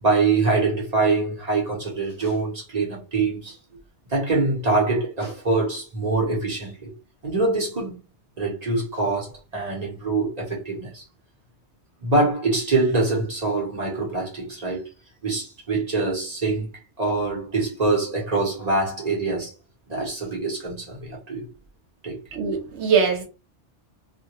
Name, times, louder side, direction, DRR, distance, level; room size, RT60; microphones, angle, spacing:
voice 1, 0.0-3.6 4.1-6.9 7.2-8.0 8.4-11.0 12.0-14.8 15.2-16.7 17.0-19.5 19.9-21.4 22.0-22.2, right 3 dB, 40° right, 0.8 m, -24 dB
voice 2, 22.3-23.2, right 6 dB, 70° right, 1.0 m, -22 dB
2.2 x 2.1 x 2.8 m
omnidirectional pair, 1.2 m